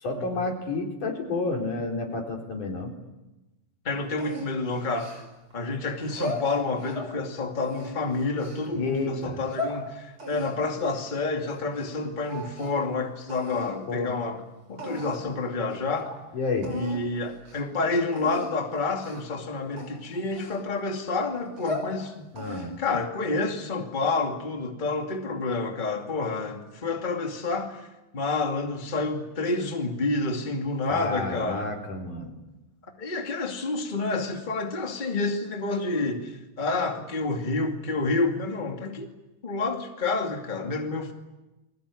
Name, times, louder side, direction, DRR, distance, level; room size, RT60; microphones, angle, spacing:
voice 1, 0.0-2.9 8.7-9.4 13.6-14.1 16.3-16.7 22.3-22.7 30.9-32.3, left 3 dB, 80° left, 1 dB, 5.7 m, -30 dB
voice 2, 3.8-5.2 5.5-14.4 14.7-16.1 16.7-27.9 28.1-31.8 33.0-39.1 39.4-41.1, left 3 dB, 15° left, 3 dB, 2.2 m, -29 dB
sound 1, 4.2-5.5 6.0-7.1 7.6-8.7 9.2-9.8 10.2-12.0 12.2-12.9 13.3-13.7 14.4-14.5 14.8-15.3 15.7-15.8 16.1-16.2 16.6-17.0 17.4-17.6 18.1-18.5 19.0-19.3 19.8-21.0 21.4-21.9 22.4-22.9, left 1 dB, 40° right, 6.6 m, -36 dB
30.0 x 22.5 x 8.6 m, 1.0 s
omnidirectional pair, 3.5 m